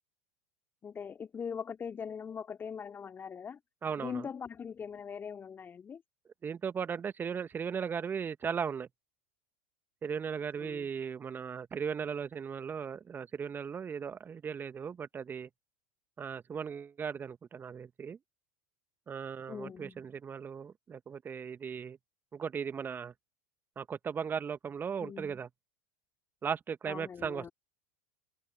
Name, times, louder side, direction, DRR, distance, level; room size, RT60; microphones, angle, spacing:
voice 1, 0.8-3.6 4.0-6.0 10.6-10.9 19.5-20.0 25.0-25.4 26.9-27.5, left 6 dB, 25° left, 3.1 m, -41 dB
voice 2, 3.8-4.3 6.4-8.9 10.0-15.5 16.2-18.2 19.1-22.0 22.3-23.1 23.7-25.5 26.4-27.5, right 6 dB, 25° right, 1.6 m, -37 dB
figure-of-eight pair, 80°, 8 cm